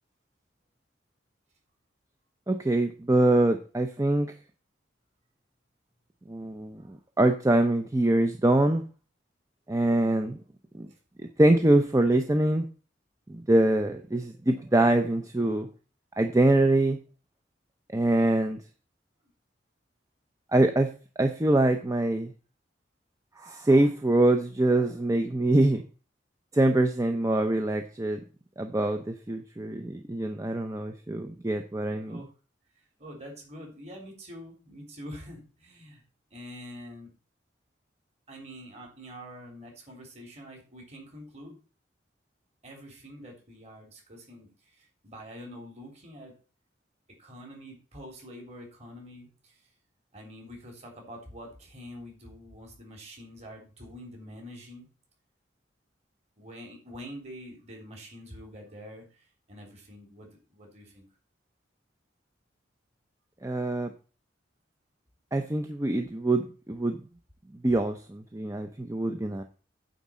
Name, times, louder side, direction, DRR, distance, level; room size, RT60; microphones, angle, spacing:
voice 1, 2.5-4.3 6.3-8.8 9.7-10.4 10.7-10.9 11.2-12.7 13.3-15.7 16.2-17.0 17.9-18.6 20.5-20.9 21.2-22.3 23.4-25.8 26.5-28.2 28.6-32.2 63.4-63.9 65.3-67.0 67.6-69.4, right 1 dB, 15° right, 6 dB, 0.6 m, -24 dB
voice 2, 33.0-36.0 36.3-37.1 38.3-41.6 42.6-46.3 47.2-49.6 50.1-54.9 56.4-61.0, equal, 35° right, 0 dB, 3.5 m, -46 dB
9.2 x 4.2 x 7.4 m, 0.36 s
head